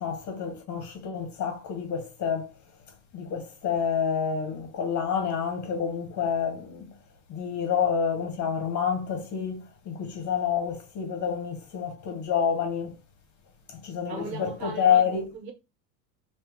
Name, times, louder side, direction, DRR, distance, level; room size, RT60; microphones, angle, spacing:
voice 1, 0.0-2.5 3.1-6.9 7.3-13.0 13.7-15.3, left 7 dB, 35° left, 1.5 m, -28 dB
voice 2, 14.1-15.5, right 5 dB, 85° right, 1.4 m, -39 dB
3.2 x 3.0 x 3.6 m
supercardioid pair, 115°, 49 cm